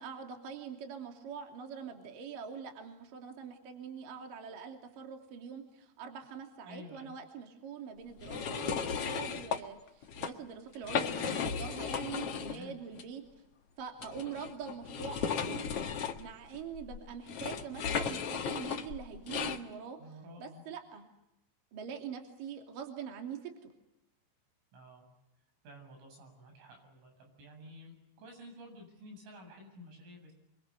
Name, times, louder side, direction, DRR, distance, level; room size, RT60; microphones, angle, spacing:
voice 1, 0.0-13.2 13.8-20.0 20.4-21.1 21.7-23.7, right 7 dB, 50° right, 4 dB, 4.0 m, -44 dB
voice 2, 6.6-7.2 12.4-12.8 20.0-20.6 24.7-25.1 25.6-30.3, left 1 dB, 85° right, 3 dB, 10.5 m, -51 dB
sound 1, 8.2-9.6 10.0-10.3 10.7-12.6 12.9-13.0 14.0-19.6, left 7 dB, 85° left, 1.3 m, -35 dB
28.5 x 24.0 x 8.2 m, 0.87 s
omnidirectional pair, 5.6 m